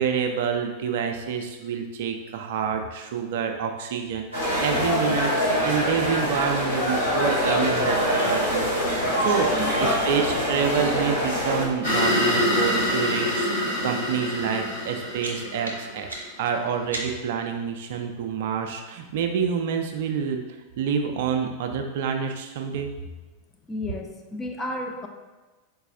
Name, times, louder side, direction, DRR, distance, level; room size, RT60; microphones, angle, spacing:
voice 1, 0.0-16.1 16.4-20.4 20.8-22.9, right 7 dB, 55° right, 4 dB, 0.4 m, -28 dB
sound 1, 4.3-11.6, equal, 80° left, 1.4 m, -24 dB
voice 2, 9.5-9.9 23.7-25.1, left 2 dB, 15° left, 2 dB, 0.5 m, -33 dB
sound 2, 11.8-16.4, left 1 dB, 60° left, 1.3 m, -25 dB
sound 3, 15.2-17.4, right 1 dB, 75° right, 0.7 m, -38 dB
4.1 x 2.3 x 3.7 m, 1.2 s
figure-of-eight pair, 90°, 0 cm